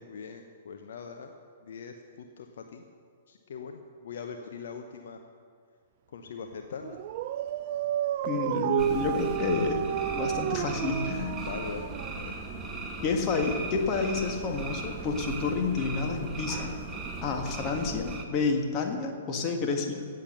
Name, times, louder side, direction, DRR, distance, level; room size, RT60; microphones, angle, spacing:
voice 1, 0.0-1.3 1.6-2.8 3.3-5.2 6.1-7.0 11.4-12.3, left 6 dB, 55° left, 5 dB, 0.9 m, -41 dB
Dog, 6.8-12.5, right 12 dB, 40° right, 0.3 m, -31 dB
voice 2, 8.3-9.8 10.1-11.4 13.0-16.8 17.2-20.1, left 4 dB, 30° left, 3 dB, 1.8 m, -29 dB
sound 1, 8.8-18.2, right 3 dB, 20° right, 1.4 m, -38 dB
17.0 x 7.5 x 6.7 m, 2.1 s
figure-of-eight pair, 110°, 0 cm